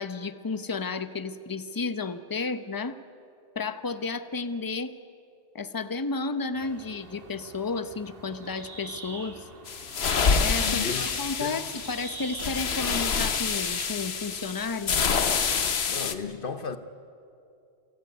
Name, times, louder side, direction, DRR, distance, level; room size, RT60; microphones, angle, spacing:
voice 1, 0.0-3.0 3.5-4.9 5.5-9.5 10.4-14.9, left 4 dB, 20° left, 0.8 m, -32 dB
sound 1, 6.5-14.5, right 3 dB, 60° right, 2.0 m, -46 dB
sound 2, 9.7-16.1, left 6 dB, 80° left, 1.3 m, -27 dB
sound 3, 10.5-15.9, right 1 dB, 10° right, 1.6 m, -48 dB
voice 2, 10.6-11.1 11.4-11.6 15.9-16.8, left 5 dB, 60° left, 1.1 m, -33 dB
28.0 x 17.5 x 9.4 m
omnidirectional pair, 1.1 m